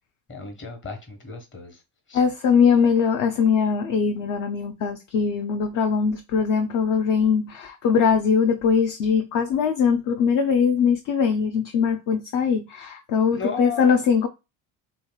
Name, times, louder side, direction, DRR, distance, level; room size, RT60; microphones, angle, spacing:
voice 1, 0.3-1.8 2.1-2.2 13.3-14.0, left 4 dB, 30° left, 1.2 m, -34 dB
voice 2, 2.1-14.3, left 6 dB, 50° left, 0.6 m, -21 dB
3.0 x 2.8 x 2.2 m
supercardioid pair, 95°, 41 cm